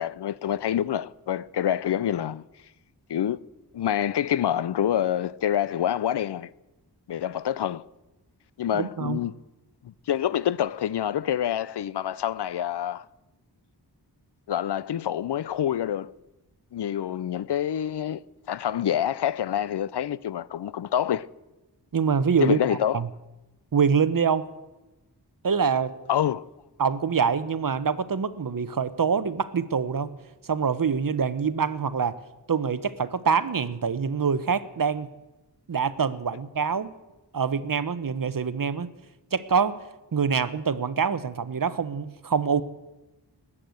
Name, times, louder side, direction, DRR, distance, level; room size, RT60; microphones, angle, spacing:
voice 1, 0.0-2.4 3.1-3.4 3.7-6.5 7.1-7.9 8.6-9.3 9.8-13.1 14.5-16.1 16.7-18.2 18.5-21.3 22.4-23.1 26.1-26.5, left 10 dB, 75° left, 0.6 m, -27 dB
voice 2, 8.7-9.2 21.9-23.1 23.7-24.4 25.4-25.9 26.8-30.2 30.4-32.1 32.5-35.1 35.7-36.9 37.3-38.9 39.3-39.8 40.1-42.6, right 6 dB, 55° right, 0.9 m, -25 dB
20.0 x 8.7 x 7.8 m
wide cardioid pair, 80°, 41 cm